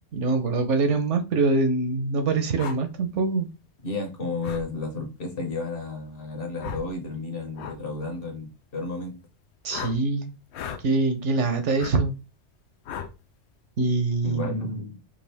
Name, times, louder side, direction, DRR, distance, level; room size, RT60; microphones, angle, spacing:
voice 1, 0.1-3.5 9.6-10.3 10.8-12.1 13.8-14.8, right 3 dB, 75° right, 7 dB, 1.1 m, -24 dB
sound 1, 2.6-2.8 4.4-4.7 6.6-6.9 7.5-7.8 9.7-10.0 10.5-10.8 11.8-12.0 12.9-13.1, left 7 dB, 70° left, 0.8 m, -35 dB
voice 2, 3.8-9.2 14.2-15.0, left 3 dB, 50° left, 3 dB, 1.2 m, -32 dB
5.2 x 2.4 x 3.4 m, 0.28 s
omnidirectional pair, 1.3 m